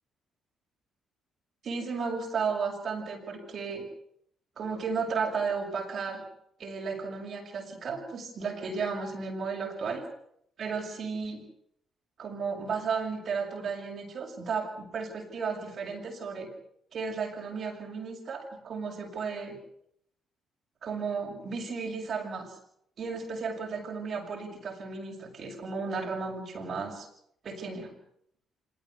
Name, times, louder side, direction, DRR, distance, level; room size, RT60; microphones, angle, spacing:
voice 1, 1.6-3.8 4.6-6.2 6.6-10.0 10.6-11.4 12.2-16.5 16.9-19.6 20.8-22.5 23.0-27.1 27.4-27.9, right 5 dB, 55° right, 0 dB, 6.5 m, -34 dB
26.0 x 18.0 x 8.5 m, 0.72 s
hypercardioid pair, 45°, 0 cm